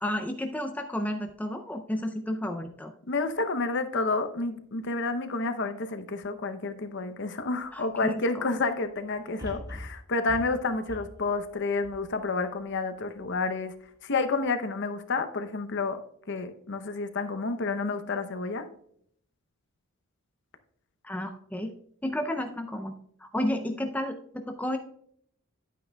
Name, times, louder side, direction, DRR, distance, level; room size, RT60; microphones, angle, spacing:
voice 1, 0.0-2.9 7.7-8.1 21.0-21.7 22.0-22.9 23.2-24.8, left 1 dB, 5° left, 4 dB, 0.4 m, -31 dB
voice 2, 3.1-13.7 14.0-16.0 16.3-18.7, left 3 dB, 55° left, 9 dB, 0.7 m, -30 dB
sound 1, 9.4-12.7 13.2-13.3, equal, 20° right, 1.7 m, -43 dB
10.5 x 8.9 x 2.3 m, 0.66 s
head